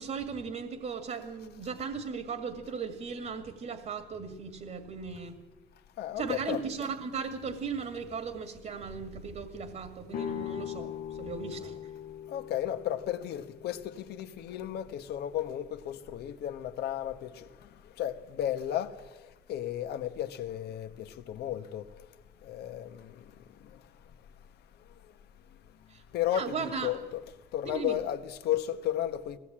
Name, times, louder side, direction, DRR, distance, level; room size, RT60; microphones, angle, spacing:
voice 1, 0.0-5.3 6.2-11.8 25.9-26.0 26.3-26.9 27.6-28.0, right 5 dB, 45° right, 2.0 m, -37 dB
voice 2, 6.0-6.6 12.3-17.7 18.0-19.0 19.5-21.8 22.4-23.2 26.1-27.2 27.5-29.4, left 11 dB, 75° left, 1.4 m, -34 dB
sound 1, 10.1-15.9, left 10 dB, 60° left, 0.8 m, -42 dB
20.5 x 17.0 x 8.8 m
cardioid pair, 110°, 17 cm